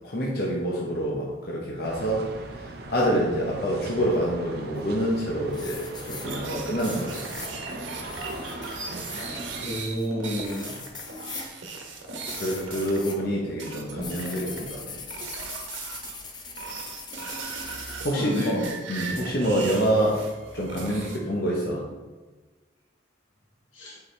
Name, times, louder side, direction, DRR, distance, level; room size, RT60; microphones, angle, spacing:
voice 1, 0.0-2.3 2.9-7.3 12.4-15.0 18.0-20.2 20.5-21.8, equal, 55° left, -3 dB, 0.9 m, -27 dB
sound 1, 1.8-9.7, right 2 dB, 55° right, 0.6 m, -40 dB
sound 2, 4.8-5.2 5.5-13.2 13.5-18.0, left 4 dB, 25° left, 0.6 m, -41 dB
sound 3, 6.2-13.3 13.6-14.8 15.1-16.2 16.6-21.2, right 3 dB, 85° right, 1.1 m, -37 dB
voice 2, 9.6-10.8 17.7-17.8 18.1-18.6 23.7-24.0, equal, 90° left, -3 dB, 1.8 m, -31 dB
7.0 x 4.8 x 3.3 m, 1.3 s
head